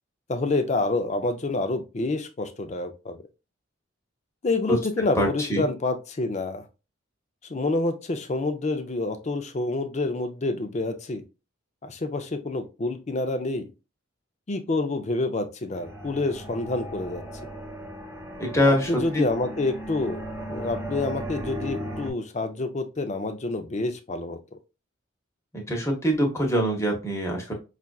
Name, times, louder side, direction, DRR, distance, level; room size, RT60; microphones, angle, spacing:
voice 1, 0.3-3.2 4.4-6.6 7.5-11.2 11.8-13.7 14.5-17.2 18.6-24.4, left 2 dB, 35° left, 8 dB, 0.5 m, -28 dB
voice 2, 5.2-5.7 18.4-19.2 25.5-27.5, equal, 15° left, 1 dB, 0.9 m, -24 dB
sound 1, 15.7-22.1, right 1 dB, 10° right, 0.9 m, -36 dB
5.6 x 2.5 x 2.3 m, 0.29 s
head